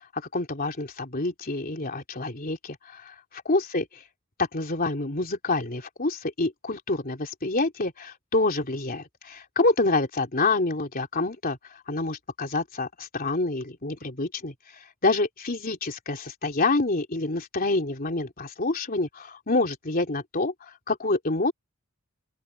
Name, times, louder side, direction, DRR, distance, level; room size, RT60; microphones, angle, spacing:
voice 1, 0.3-3.1 3.5-4.0 4.4-11.6 11.9-14.5 15.0-21.5, left 2 dB, 40° left, 3.5 m, -27 dB
open air
head